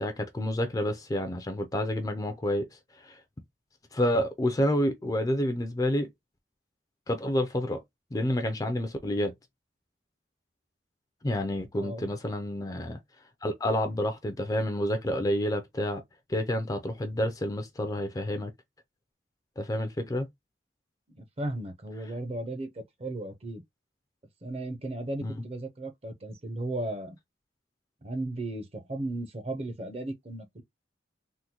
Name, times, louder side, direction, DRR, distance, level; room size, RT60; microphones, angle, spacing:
voice 1, 0.0-2.7 3.0-3.2 3.9-6.1 7.1-7.8 8.1-9.3 11.2-13.0 13.4-16.0 16.3-18.5 19.6-20.3 25.2-25.4, left 1 dB, 20° left, 0.4 m, -29 dB
voice 2, 11.8-12.2 21.2-23.6 24.4-27.2 28.0-30.6, right 1 dB, 35° right, 0.6 m, -35 dB
3.7 x 2.1 x 2.8 m
head